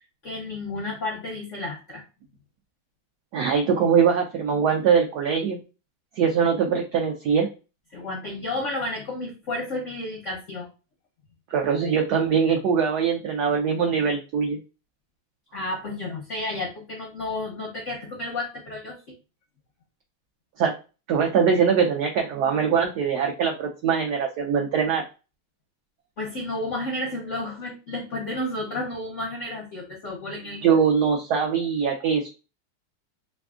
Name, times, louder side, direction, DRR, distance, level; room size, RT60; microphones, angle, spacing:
voice 1, 0.2-2.0 7.9-10.7 15.5-19.0 26.2-30.8, left 2 dB, 60° left, -1 dB, 0.7 m, -32 dB
voice 2, 3.3-5.6 6.2-7.5 11.5-14.6 20.6-20.7 21.1-25.0 30.6-32.3, right 6 dB, 75° right, 2 dB, 0.9 m, -22 dB
3.7 x 3.3 x 2.3 m, 0.31 s
omnidirectional pair, 2.2 m